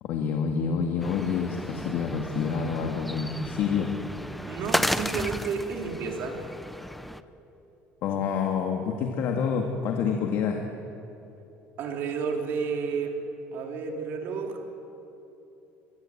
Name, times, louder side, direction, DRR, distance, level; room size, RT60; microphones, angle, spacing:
voice 1, 0.0-3.9 8.0-10.6, left 6 dB, 55° left, 2 dB, 2.0 m, -28 dB
sound 1, 1.0-7.2, equal, ahead, 0.6 m, -33 dB
voice 2, 4.5-6.4 11.8-13.1 13.5-14.8, right 5 dB, 50° right, 2 dB, 3.5 m, -31 dB
22.5 x 22.0 x 8.7 m, 2.9 s
cardioid pair, 160°, 5 cm